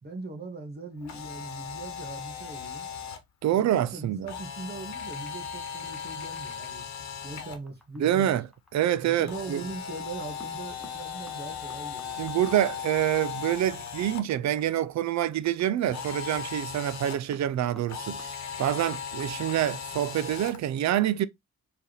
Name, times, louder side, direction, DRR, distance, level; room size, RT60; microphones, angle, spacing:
voice 1, 0.0-2.9 3.5-6.8 7.2-8.3 9.0-12.2, right 3 dB, 35° right, 1.4 m, -40 dB
Camera, 1.0-3.2 4.3-7.6 9.3-14.2 15.9-17.2 17.9-20.6, left 7 dB, 65° left, 1.1 m, -37 dB
voice 2, 3.4-4.3 8.0-8.5 8.7-9.6 12.2-21.3, right 11 dB, 65° right, 0.5 m, -26 dB
sound 1, 5.9-19.5, equal, ahead, 1.1 m, -54 dB
4.5 x 3.5 x 3.0 m
cardioid pair, 125°, 30 cm